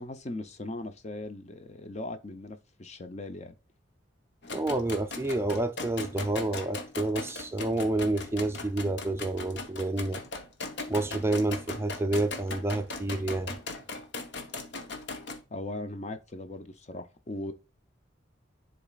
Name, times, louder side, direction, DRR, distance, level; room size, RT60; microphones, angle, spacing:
voice 1, 0.0-3.5 15.5-17.5, left 2 dB, 35° left, 0.6 m, -39 dB
sound 1, 4.4-15.4, left 3 dB, 60° left, 0.9 m, -39 dB
voice 2, 4.5-10.2 10.9-13.5, right 2 dB, 15° right, 0.4 m, -29 dB
10.5 x 4.1 x 2.4 m
head